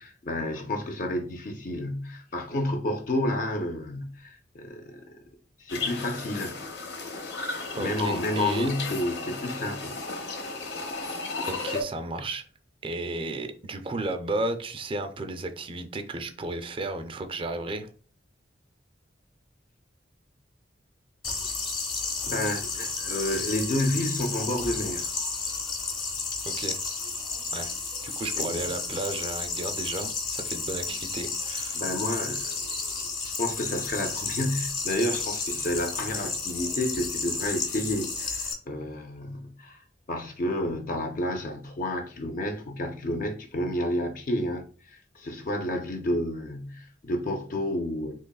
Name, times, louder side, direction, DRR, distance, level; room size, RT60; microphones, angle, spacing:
voice 1, 0.0-5.0 5.6-6.5 7.8-10.0 21.4-21.5 22.2-25.1 28.4-28.6 31.7-39.8 40.1-48.1, left 1 dB, 45° left, 0.5 m, -30 dB
sound 1, 5.7-11.8, left 3 dB, 65° left, 0.9 m, -34 dB
voice 2, 7.7-8.7 11.5-12.4 12.8-17.9 26.4-26.8 27.5-27.7 28.0-31.8, right 2 dB, 30° right, 0.4 m, -33 dB
sound 2, 21.2-38.5, left 4 dB, 30° left, 0.9 m, -32 dB
3.9 x 3.0 x 2.3 m
head